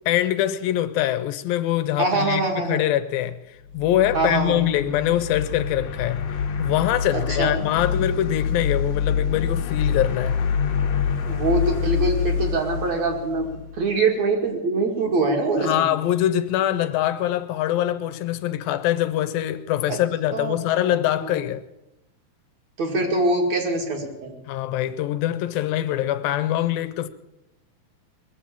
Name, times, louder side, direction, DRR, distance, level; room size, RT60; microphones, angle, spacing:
voice 1, 0.1-6.3 6.6-10.4 15.6-21.6 24.5-27.1, left 12 dB, 80° left, 2.4 m, -23 dB
voice 2, 2.0-2.8 4.1-4.6 7.4-7.6 11.3-13.5 13.8-15.9 19.9-20.0 20.3-21.0 21.2-21.3 22.8-24.3, right 3 dB, 50° right, 3.1 m, -23 dB
sound 1, 3.6-13.9, left 6 dB, 60° left, 2.0 m, -26 dB
21.5 x 7.7 x 8.7 m
omnidirectional pair, 4.3 m